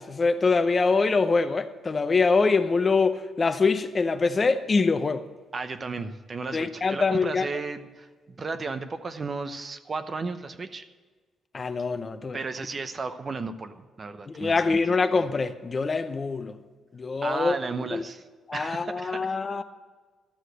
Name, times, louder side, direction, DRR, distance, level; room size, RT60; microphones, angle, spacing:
voice 1, 0.0-5.2 6.5-7.5 11.5-12.4 14.3-16.6 16.9-17.6 17.9-18.0 18.5-19.6, left 4 dB, 35° left, 0.7 m, -24 dB
voice 2, 5.5-10.9 12.3-14.8 17.2-18.2 18.5-19.3, right 4 dB, 35° right, 0.8 m, -34 dB
13.0 x 6.5 x 7.9 m
cardioid pair, 90°, 0 cm